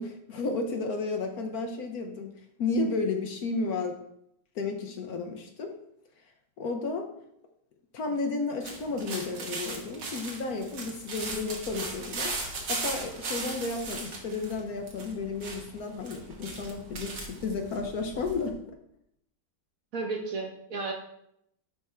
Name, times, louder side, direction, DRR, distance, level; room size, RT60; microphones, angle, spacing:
voice 1, 0.0-4.0 4.5-5.7 6.6-7.1 7.9-12.3 12.7-18.6, left 3 dB, 65° left, 4 dB, 1.1 m, -32 dB
sound 1, 8.6-18.5, right 3 dB, 70° right, 1.9 m, -38 dB
voice 2, 19.9-20.9, right 3 dB, 55° right, 1 dB, 1.4 m, -33 dB
10.5 x 3.5 x 4.3 m, 0.76 s
omnidirectional pair, 1.9 m